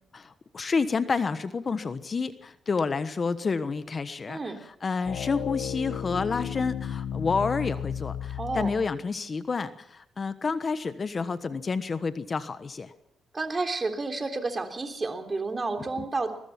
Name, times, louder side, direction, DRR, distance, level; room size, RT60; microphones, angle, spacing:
voice 1, 0.1-4.4 4.8-12.9 16.0-16.1, left 4 dB, 40° left, 12 dB, 1.2 m, -29 dB
voice 2, 4.3-4.6 8.4-8.7 13.3-16.3, right 3 dB, 30° right, 5 dB, 3.6 m, -31 dB
sound 1, 5.0-9.0, left 9 dB, 80° left, 1.4 m, -34 dB
21.0 x 20.5 x 5.9 m, 0.73 s
cardioid pair, 75°, 0 cm